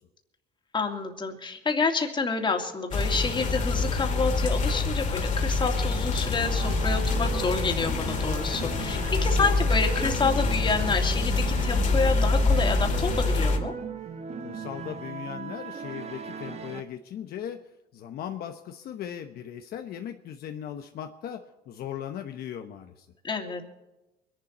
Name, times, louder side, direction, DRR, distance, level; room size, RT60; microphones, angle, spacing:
voice 1, 0.7-13.7 23.2-23.7, left 4 dB, 30° left, 4 dB, 2.6 m, -28 dB
sound 1, 2.9-13.6, left 3 dB, 45° left, 2.4 m, -26 dB
sound 2, 6.4-16.8, right 5 dB, 40° right, 1.2 m, -38 dB
voice 2, 14.4-17.6 17.9-23.1, left 9 dB, 65° left, 5 dB, 1.1 m, -38 dB
23.5 x 11.5 x 4.3 m, 1.0 s
cardioid pair, 110°, 17 cm